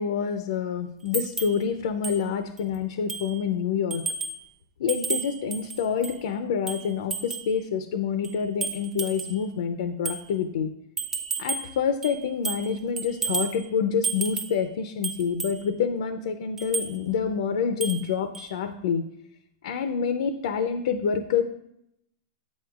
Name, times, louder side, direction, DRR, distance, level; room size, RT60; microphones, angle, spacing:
voice 1, 0.0-4.0 4.8-10.7 11.4-19.0 19.6-21.4, left 6 dB, 75° left, 9 dB, 0.5 m, -27 dB
sound 1, 1.1-1.6 2.0-2.2 2.6-2.7 3.1-3.4 3.9-4.4 4.9-6.2 6.7-7.5 8.2-9.4 10.1-10.2 11.0-11.7 12.0-12.7 13.0-13.6 14.0-14.6 15.0-15.6 16.6-16.9 17.8-18.1 18.3-18.5, right 4 dB, 10° right, 0.6 m, -32 dB
8.5 x 6.2 x 2.4 m, 0.78 s
supercardioid pair, 150°, 3 cm